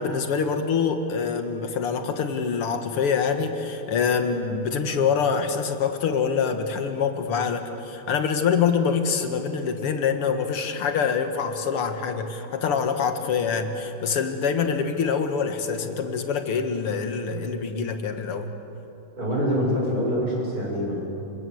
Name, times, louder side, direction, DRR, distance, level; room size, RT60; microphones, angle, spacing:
voice 1, 0.0-18.5, left 6 dB, 90° left, 7 dB, 2.6 m, -25 dB
voice 2, 19.2-20.9, equal, 40° right, -3 dB, 7.9 m, -25 dB
29.0 x 25.0 x 7.9 m, 3.0 s
omnidirectional pair, 2.4 m